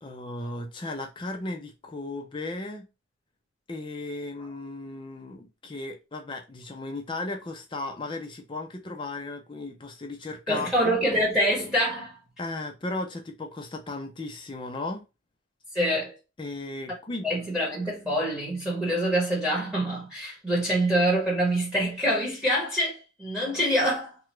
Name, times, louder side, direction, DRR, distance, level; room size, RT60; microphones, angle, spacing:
voice 1, 0.0-2.9 3.7-11.0 12.4-15.0 16.4-17.3, left 2 dB, 25° left, 0.4 m, -36 dB
voice 2, 10.5-12.2 15.7-16.1 17.2-24.2, equal, 5° right, 1.2 m, -25 dB
2.8 x 2.3 x 3.1 m
head